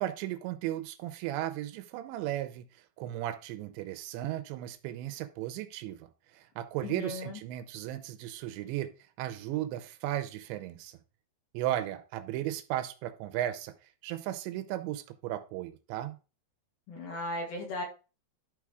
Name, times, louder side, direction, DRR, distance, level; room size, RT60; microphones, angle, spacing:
voice 1, 0.0-2.7 3.0-8.9 9.2-11.0 11.5-13.7 14.0-16.2, right 13 dB, 80° right, 2.9 m, -35 dB
voice 2, 6.8-7.4 16.9-17.8, left 1 dB, 55° left, 3.2 m, -36 dB
12.0 x 4.0 x 4.7 m
omnidirectional pair, 5.2 m